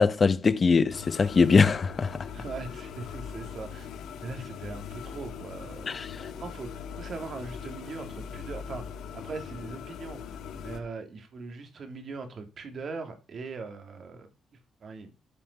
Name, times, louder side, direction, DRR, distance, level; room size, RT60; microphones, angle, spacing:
voice 1, 0.0-2.3 5.9-6.1, left 5 dB, 35° left, 1.1 m, -22 dB
sound 1, 0.9-10.8, left 7 dB, 85° left, 2.5 m, -41 dB
voice 2, 2.3-3.9 4.2-6.0 6.4-14.3 14.8-15.1, right 4 dB, 50° right, 3.0 m, -40 dB
14.0 x 5.8 x 5.6 m
cardioid pair, 115°, 0 cm